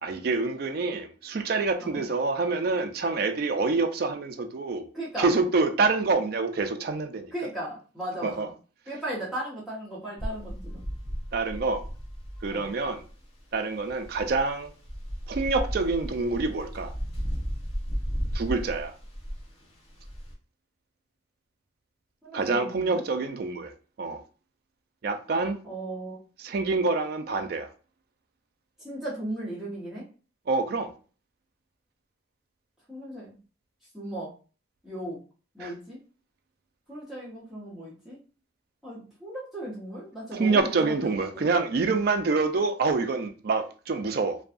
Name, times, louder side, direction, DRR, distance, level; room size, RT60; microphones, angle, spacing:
voice 1, 0.0-4.9 5.2-7.3 8.2-8.5 11.3-11.8 12.4-13.1 13.5-14.7 15.3-16.9 18.3-18.9 22.3-23.7 24.0-24.2 25.0-25.6 26.4-27.7 30.5-30.9 35.6-35.7 40.3-44.4, right 3 dB, 50° right, 0.3 m, -26 dB
voice 2, 4.9-5.3 7.3-8.5 8.9-10.8 12.5-12.7 22.2-23.0 25.6-26.2 28.8-30.0 32.9-33.3 33.9-34.3 34.8-35.2 35.5-36.0 36.9-38.2 38.8-41.5, right 1 dB, ahead, 0.9 m, -36 dB
sound 1, 10.2-20.3, equal, 30° left, 0.6 m, -34 dB
2.6 x 2.3 x 2.4 m
head